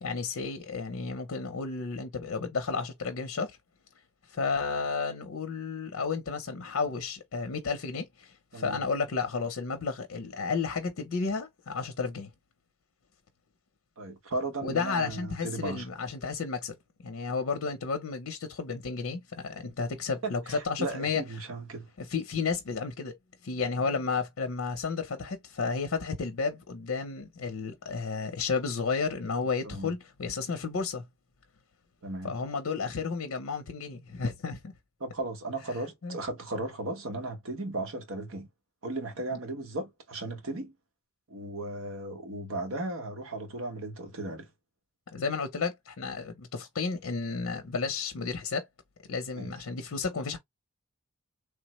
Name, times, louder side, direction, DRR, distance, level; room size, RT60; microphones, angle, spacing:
voice 1, 0.0-3.6 4.3-12.3 14.6-16.8 17.0-21.2 22.0-23.1 23.4-31.1 32.2-34.7 36.0-36.2 39.3-39.4 45.1-48.7 49.1-50.4, left 4 dB, 70° left, 0.6 m, -32 dB
voice 2, 14.0-15.9 20.2-21.9 29.6-29.9 32.0-32.3 35.0-38.5 38.8-40.7 41.3-44.5 49.3-49.5, right 2 dB, 75° right, 1.0 m, -36 dB
3.4 x 2.0 x 2.9 m
head